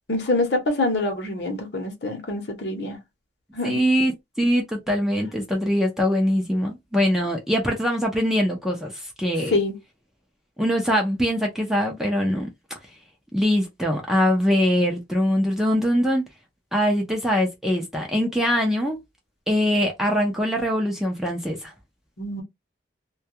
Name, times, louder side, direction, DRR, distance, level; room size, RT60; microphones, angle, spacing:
voice 1, 0.1-3.0 3.5-3.8 9.5-9.8 22.2-22.4, left 2 dB, 60° left, 0.8 m, -25 dB
voice 2, 3.6-9.5 10.6-12.5 13.3-16.2 16.7-19.0 19.5-21.7, equal, ahead, 0.5 m, -22 dB
2.2 x 2.2 x 2.7 m
head